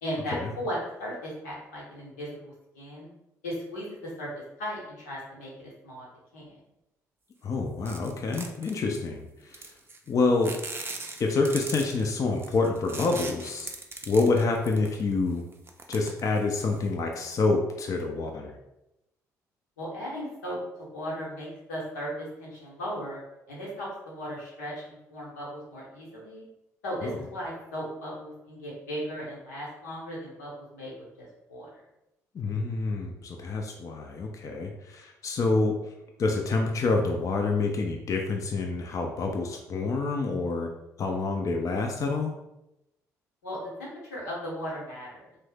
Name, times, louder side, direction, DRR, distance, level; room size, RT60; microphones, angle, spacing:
voice 1, 0.0-3.1 3.4-4.3 4.6-6.1 6.3-6.6 19.8-20.6 20.9-23.2 23.5-26.4 26.8-31.7 43.4-45.3, equal, 85° left, -5 dB, 0.8 m, -37 dB
voice 2, 7.4-9.6 10.1-10.6 11.2-13.7 14.1-15.4 15.9-18.6 27.0-27.2 32.3-35.8 36.2-40.7 41.0-42.3, left 3 dB, 40° left, 2 dB, 0.4 m, -27 dB
sound 1, 7.9-9.1 9.5-10.1 10.4-15.1 15.5-16.8, right 3 dB, 25° right, 0.5 m, -39 dB
2.6 x 2.0 x 3.3 m, 0.90 s
hypercardioid pair, 50°, 9 cm